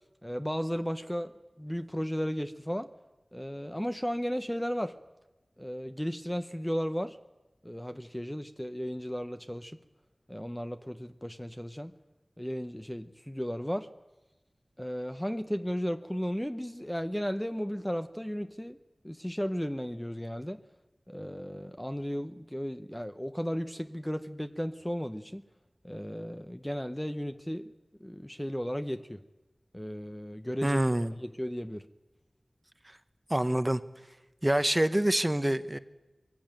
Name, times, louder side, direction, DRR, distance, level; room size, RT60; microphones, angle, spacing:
voice 1, 0.2-1.3 1.6-2.9 3.3-4.9 5.6-7.2 7.6-9.8 10.3-11.9 12.4-13.9 14.8-18.8 19.0-20.6 21.1-25.4 25.8-27.7 28.0-29.2 29.7-30.8 31.2-31.9, equal, 5° left, 8 dB, 0.8 m, -34 dB
voice 2, 30.6-31.1 32.8-33.0 33.3-33.8 34.4-35.8, right 1 dB, 20° right, 11 dB, 1.0 m, -26 dB
22.0 x 16.5 x 9.0 m, 1.1 s
wide cardioid pair, 60°, 0 cm